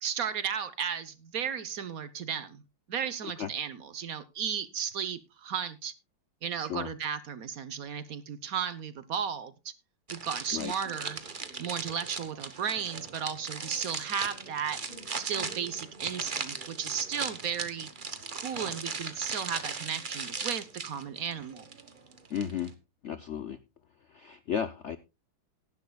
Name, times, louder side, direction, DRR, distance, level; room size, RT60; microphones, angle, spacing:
voice 1, 0.0-2.6 2.9-5.9 6.4-9.7 10.1-11.2 11.6-14.8 15.1-17.9 18.3-21.6, right 7 dB, 55° right, 14 dB, 1.2 m, -34 dB
sound 1, 10.1-22.7, right 4 dB, 30° right, 1.2 m, -38 dB
voice 2, 22.3-22.7 23.0-23.6 24.1-25.0, left 8 dB, 65° left, 12 dB, 0.7 m, -34 dB
18.0 x 10.5 x 2.3 m, 0.26 s
omnidirectional pair, 2.0 m